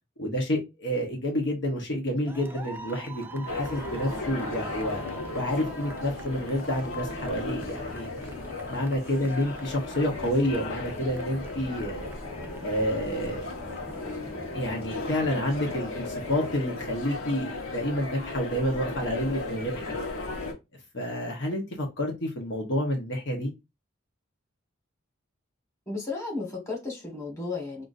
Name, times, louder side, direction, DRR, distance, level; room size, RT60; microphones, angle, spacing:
voice 1, 0.2-5.0 5.3-8.1 8.7-12.1 12.6-13.5 14.5-20.0 20.9-23.5, equal, 60° left, 1.0 m, -29 dB
sound 1, 2.3-16.6, right 2 dB, 10° right, 0.3 m, -45 dB
sound 2, 3.5-20.5, left 3 dB, 85° left, 1.1 m, -36 dB
voice 2, 25.9-27.8, left 3 dB, 15° left, 1.5 m, -34 dB
5.7 x 2.5 x 2.5 m
head